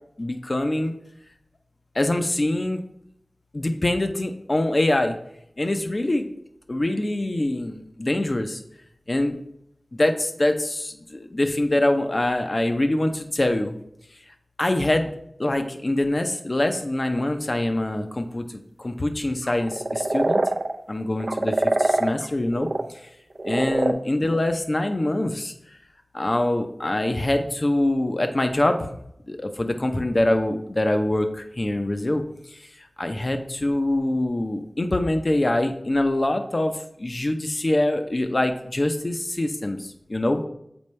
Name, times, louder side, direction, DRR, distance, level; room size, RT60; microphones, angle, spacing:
voice 1, 0.2-0.9 1.9-2.8 3.5-5.2 5.6-6.3 6.7-8.6 9.1-9.4 9.9-13.8 14.6-15.1 15.4-18.4 18.8-20.4 20.9-22.7 23.4-25.5 26.1-28.9 29.3-32.2 33.0-36.7 37.0-40.4, left 1 dB, 45° left, 6 dB, 0.7 m, -24 dB
sound 1, 16.9-17.3 19.4-20.8 21.2-22.8 23.4-23.9, right 2 dB, 65° right, 0.5 m, -23 dB
7.0 x 4.3 x 3.2 m, 0.76 s
wide cardioid pair, 45°, 0 cm